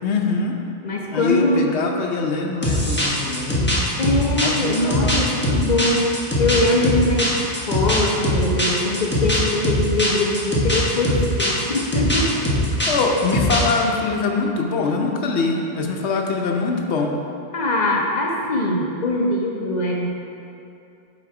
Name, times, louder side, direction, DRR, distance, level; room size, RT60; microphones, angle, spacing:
voice 1, 0.0-0.5 1.1-3.9 4.3-5.2 12.9-17.2, left 4 dB, 90° left, 2 dB, 1.0 m, -23 dB
voice 2, 0.8-1.6 4.0-7.3 7.6-12.3 17.5-20.2, left 1 dB, 45° left, -1 dB, 0.8 m, -22 dB
sound 1, 2.6-13.8, left 1 dB, 10° left, 1.0 m, -21 dB
7.7 x 4.0 x 4.7 m, 2.7 s
omnidirectional pair, 1.1 m